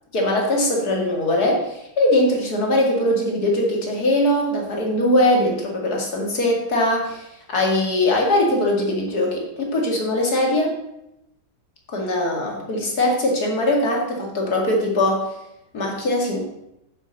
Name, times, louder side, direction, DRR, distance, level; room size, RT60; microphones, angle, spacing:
voice 1, 0.1-10.7 11.9-15.3 15.7-16.4, left 1 dB, 55° left, 0 dB, 2.7 m, -21 dB
8.0 x 7.6 x 6.7 m, 0.86 s
omnidirectional pair, 2.0 m